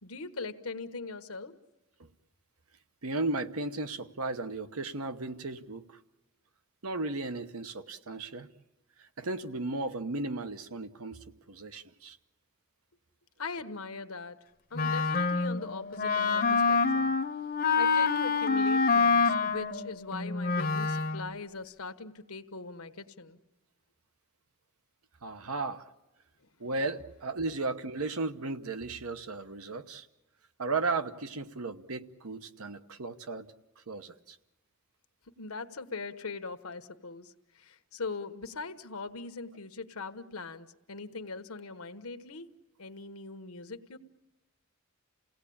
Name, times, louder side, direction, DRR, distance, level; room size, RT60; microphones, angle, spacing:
voice 1, 0.0-1.6 13.4-14.4 14.7-17.2 17.8-23.4 26.4-26.5 35.4-42.5 42.8-44.0, left 4 dB, 85° left, 9 dB, 1.2 m, -41 dB
voice 2, 3.0-6.0 6.8-8.5 9.0-12.2 25.2-25.9 26.6-30.1 30.6-33.5 33.9-34.4, right 3 dB, 85° right, 9 dB, 1.1 m, -35 dB
Wind instrument woodwind instrument, 14.7-21.3, left 4 dB, 40° left, 0.7 m, -27 dB
29.0 x 17.5 x 8.6 m, 1.0 s
head